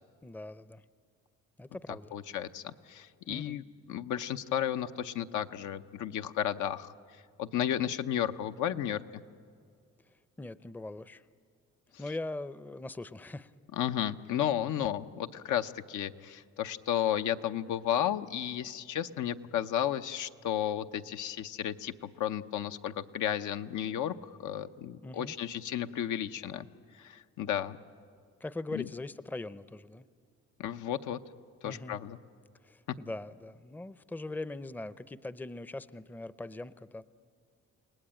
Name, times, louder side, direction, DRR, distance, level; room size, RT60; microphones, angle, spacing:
voice 1, 0.2-0.8 1.6-2.1 3.3-3.6 10.4-11.2 12.0-13.5 25.0-25.4 28.4-30.1 31.6-32.0 32.6-37.1, left 2 dB, 5° left, 16 dB, 0.5 m, -41 dB
voice 2, 2.1-6.9 7.4-9.0 13.8-24.1 24.4-26.7 27.0-27.8 28.7-28.8 30.6-31.2 31.6-32.2, left 10 dB, 80° left, 8 dB, 0.9 m, -33 dB
30.0 x 19.0 x 9.0 m, 2.2 s
cardioid pair, 90°, 30 cm